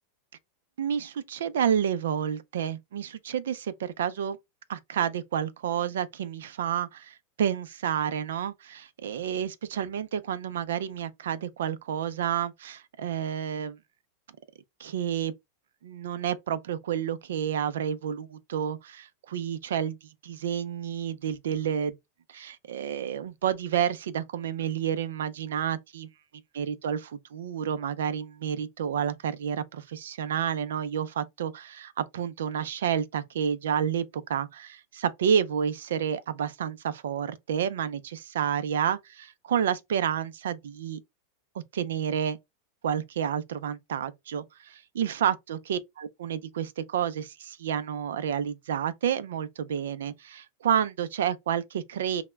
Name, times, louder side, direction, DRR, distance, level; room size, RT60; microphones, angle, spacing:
voice 1, 0.8-4.4 4.7-13.8 14.8-15.3 15.8-20.0 20.2-22.0 22.3-26.1 26.5-27.0 27.3-41.0 41.7-42.4 42.8-52.2, right 8 dB, 80° right, 0.3 m, -30 dB
2.1 x 2.1 x 3.2 m
hypercardioid pair, 120°, 0 cm